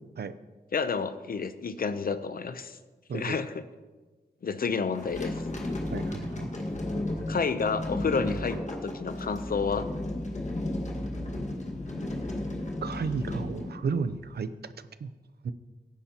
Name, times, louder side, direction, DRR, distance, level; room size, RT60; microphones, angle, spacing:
voice 1, 0.7-2.8 3.1-3.6 4.4-5.4 7.3-9.9, left 5 dB, 60° left, 11 dB, 0.7 m, -30 dB
sound 1, 4.9-14.4, left 1 dB, 45° left, 1.7 m, -34 dB
voice 2, 5.9-6.5 12.8-14.5 15.0-15.1 15.4-15.5, right 5 dB, 70° right, 12 dB, 0.6 m, -32 dB
17.5 x 9.9 x 2.9 m, 1.3 s
wide cardioid pair, 125°, 17 cm